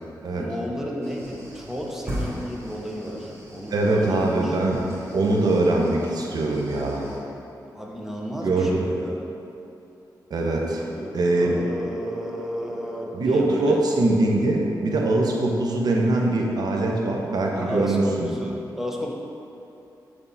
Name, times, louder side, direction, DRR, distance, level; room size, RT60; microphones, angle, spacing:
voice 1, 0.3-4.6 7.7-9.2 10.7-13.8 17.5-19.1, equal, 5° right, -2 dB, 0.8 m, -32 dB
sound 1, 1.0-7.2, equal, 35° right, 1.2 m, -38 dB
voice 2, 3.7-7.1 8.4-8.9 10.3-10.9 11.1-11.6 13.1-18.3, right 2 dB, 60° right, 0 dB, 0.8 m, -22 dB
7.1 x 3.5 x 4.0 m, 2.7 s
cardioid pair, 85°, 8 cm